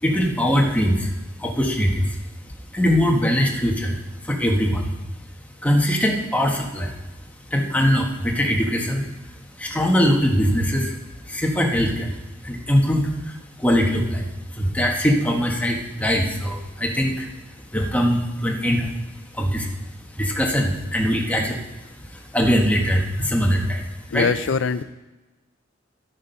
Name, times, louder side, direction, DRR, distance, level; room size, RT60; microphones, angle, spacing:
voice 1, 0.0-1.1 1.4-2.1 2.7-4.0 4.2-4.9 5.6-6.9 7.5-9.1 9.6-10.9 11.3-12.2 12.4-13.3 13.6-14.3 14.5-17.3 17.7-18.9 19.3-19.7 20.2-21.6 22.1-24.3, equal, 10° left, 1 dB, 1.5 m, -21 dB
voice 2, 24.1-24.8, left 5 dB, 75° left, 15 dB, 0.5 m, -22 dB
11.0 x 8.6 x 5.6 m, 1.1 s
head